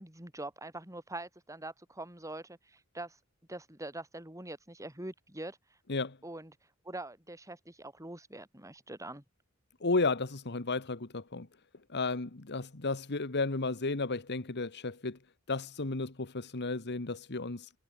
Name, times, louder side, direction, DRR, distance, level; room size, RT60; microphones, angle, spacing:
voice 1, 0.0-3.2 3.5-5.8 6.2-9.2, right 2 dB, 15° right, 5.2 m, -44 dB
voice 2, 9.8-11.5 11.9-15.2 15.5-17.7, left 3 dB, 55° left, 1.5 m, -33 dB
head